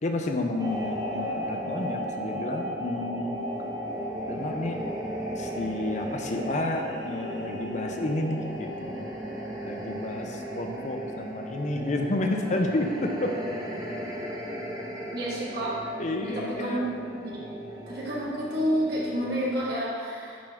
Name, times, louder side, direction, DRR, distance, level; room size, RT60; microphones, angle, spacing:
voice 1, 0.0-3.4 4.3-4.8 5.4-9.1 9.7-13.4 16.0-16.9, left 2 dB, 40° left, 3 dB, 0.6 m, -30 dB
sound 1, 0.6-19.6, equal, 20° right, 0.7 m, -35 dB
voice 2, 15.1-15.7 16.2-16.9 17.2-17.4 17.9-20.4, equal, 60° right, -7 dB, 1.7 m, -29 dB
10.5 x 3.5 x 3.5 m, 2.1 s
head